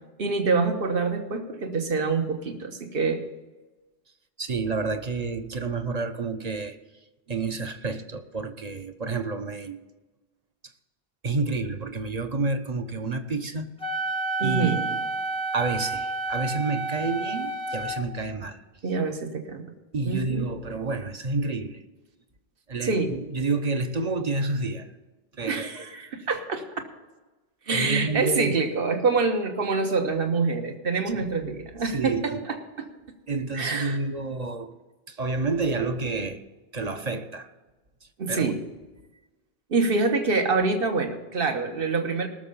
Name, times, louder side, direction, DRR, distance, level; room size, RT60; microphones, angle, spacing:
voice 1, 0.2-3.2 14.4-14.9 18.8-19.6 20.0-20.5 22.8-23.1 25.5-26.6 27.7-32.9 33.5-34.0 38.2-38.6 39.7-42.3, right 4 dB, 65° right, 1.4 m, -26 dB
voice 2, 4.4-6.8 7.3-9.8 11.2-13.7 14.4-15.0 15.5-18.6 19.9-21.8 22.7-24.9 25.4-25.8 27.7-28.6 31.2-31.3 31.8-32.4 33.3-34.7 35.1-36.4 36.7-37.5 38.3-38.5, right 3 dB, 40° right, 0.9 m, -29 dB
Wind instrument woodwind instrument, 13.8-18.0, right 3 dB, 5° left, 0.7 m, -30 dB
19.0 x 6.7 x 5.5 m
omnidirectional pair, 1.0 m